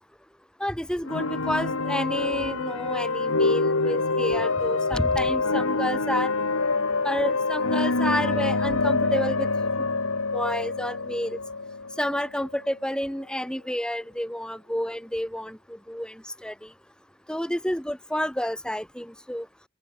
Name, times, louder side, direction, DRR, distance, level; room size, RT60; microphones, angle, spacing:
voice 1, 0.6-6.3 7.0-9.5 10.3-11.4 12.0-15.6 15.9-16.1 16.4-16.5 17.3-19.4, equal, 5° left, 2.6 m, -29 dB
sound 1, 1.1-12.7, left 3 dB, 75° left, 1.9 m, -26 dB
open air
head